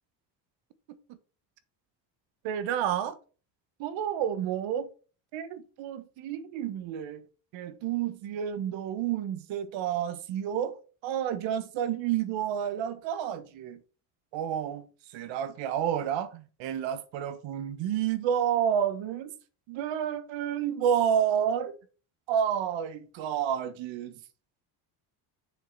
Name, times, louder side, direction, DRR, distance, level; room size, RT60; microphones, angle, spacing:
voice 1, 2.4-3.2 3.8-4.9 5.3-7.2 7.5-10.8 11.0-13.8 14.3-14.8 15.1-19.3 19.7-21.8 22.3-24.1, right 9 dB, 75° right, 1.3 m, -30 dB
7.0 x 6.5 x 4.6 m
cardioid pair, 110°, 45 cm